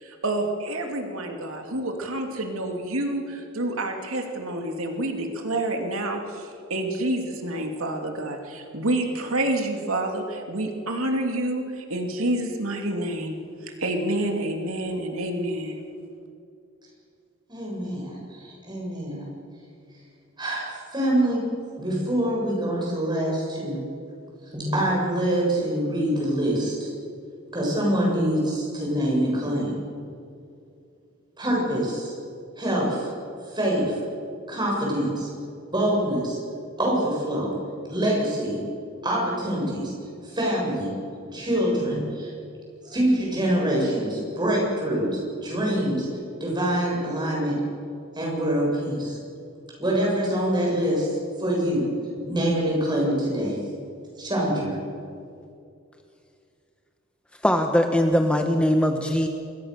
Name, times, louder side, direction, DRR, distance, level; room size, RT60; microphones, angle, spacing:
voice 1, 0.0-13.4 13.6-15.8, right 1 dB, 90° right, 3 dB, 2.8 m, -28 dB
voice 2, 17.5-19.3 20.4-21.4 21.8-23.8 24.5-26.9 27.5-29.8 31.4-32.1 32.6-33.1 33.5-34.0 34.5-35.3 35.7-36.4 36.8-37.5 37.9-38.6 39.0-39.9 40.2-40.9 41.3-42.3 42.8-46.1 46.4-47.6 48.1-49.2 49.8-51.9 52.3-53.6 54.2-54.8, right 1 dB, 20° right, -3 dB, 7.7 m, -25 dB
voice 3, 57.4-59.3, equal, 5° left, 4 dB, 1.2 m, -21 dB
27.0 x 21.5 x 6.8 m, 2.5 s
head